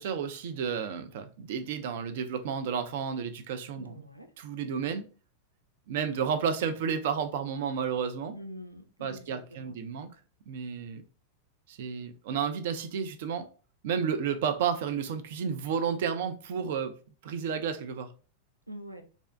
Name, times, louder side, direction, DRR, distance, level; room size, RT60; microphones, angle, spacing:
voice 1, 0.0-3.9 4.4-5.0 5.9-8.3 9.0-10.1 10.5-11.0 11.7-13.5 13.8-16.9 17.2-18.1, right 7 dB, 55° right, 0.3 m, -31 dB
voice 2, 3.8-4.3 8.3-9.8 18.7-19.0, equal, 90° left, 0.3 m, -45 dB
2.5 x 2.1 x 2.4 m
figure-of-eight pair, 90°, 0 cm